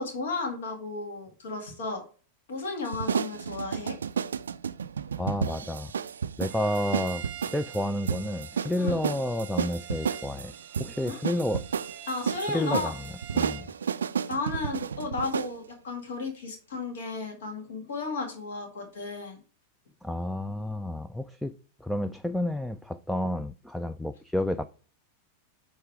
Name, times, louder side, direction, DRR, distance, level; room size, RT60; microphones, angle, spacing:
voice 1, 0.0-2.0 2.5-4.0 8.8-9.0 11.1-11.2 12.1-12.9 14.3-19.4, left 3 dB, 60° left, 1.9 m, -34 dB
sound 1, 2.9-15.6, right 7 dB, 70° right, 0.3 m, -32 dB
voice 2, 5.2-5.9 6.4-10.5 10.8-11.6 12.5-12.9 13.3-13.7 20.0-21.5 21.8-24.6, left 1 dB, 5° left, 0.4 m, -30 dB
Bowed string instrument, 6.5-13.7, right 11 dB, 40° right, 0.7 m, -45 dB
9.1 x 3.2 x 4.7 m
figure-of-eight pair, 90°, 0 cm